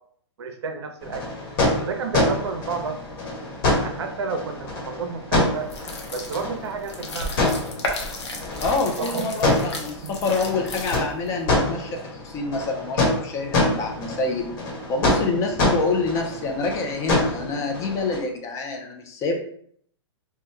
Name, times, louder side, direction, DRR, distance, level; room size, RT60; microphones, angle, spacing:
voice 1, 0.4-1.2 1.8-3.0 3.8-5.7 6.1-7.3 9.0-9.8 10.0-10.1, right 5 dB, 70° right, 6 dB, 0.6 m, -30 dB
sound 1, 1.0-18.2, left 2 dB, 50° left, 1.1 m, -26 dB
sound 2, 5.6-11.3, left 2 dB, 75° left, 0.9 m, -33 dB
voice 2, 8.6-14.5 14.9-19.4, left 3 dB, 20° left, 2 dB, 0.4 m, -27 dB
3.0 x 2.2 x 3.4 m, 0.63 s
hypercardioid pair, 145°, 15 cm